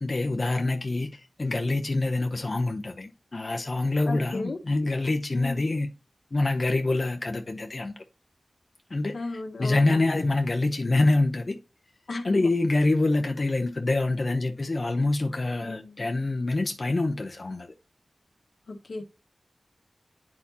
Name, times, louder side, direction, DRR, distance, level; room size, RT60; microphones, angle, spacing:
voice 1, 0.0-5.9 6.3-8.0 8.9-9.1 9.6-11.6 12.2-17.7, left 2 dB, 50° left, 0.7 m, -26 dB
voice 2, 4.0-4.6 5.3-5.6 9.1-10.0 12.1-12.5 15.6-16.0 18.7-19.0, left 2 dB, 85° left, 1.4 m, -35 dB
9.5 x 4.4 x 2.8 m
wide cardioid pair, 60°, 0 cm